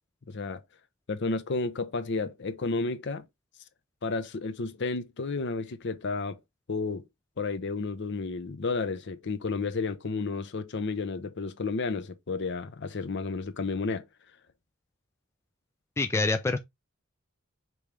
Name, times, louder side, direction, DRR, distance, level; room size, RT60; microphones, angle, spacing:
voice 1, 0.3-0.6 1.1-3.2 4.0-6.4 6.7-7.0 7.4-14.0, left 3 dB, 55° left, 0.6 m, -32 dB
voice 2, 16.0-16.6, left 3 dB, 10° left, 0.3 m, -26 dB
5.3 x 3.1 x 3.2 m
head